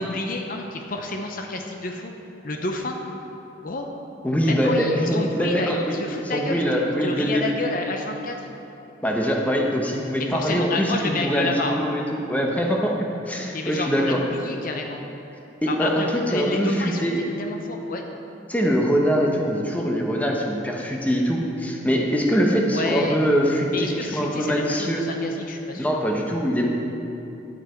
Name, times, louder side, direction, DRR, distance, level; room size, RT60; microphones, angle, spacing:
voice 1, 0.0-2.1 2.4-3.0 3.6-3.9 4.4-8.5 10.3-11.8 13.5-15.0 15.7-17.1 17.4-18.0 22.7-23.2 23.7-25.9, left 2 dB, 45° left, 3 dB, 0.7 m, -30 dB
voice 2, 4.2-6.0 6.3-7.5 9.0-12.9 13.3-14.2 15.6-17.2 18.5-25.1 25.8-26.7, equal, 10° left, -1 dB, 0.9 m, -23 dB
11.0 x 8.2 x 4.5 m, 2.9 s
head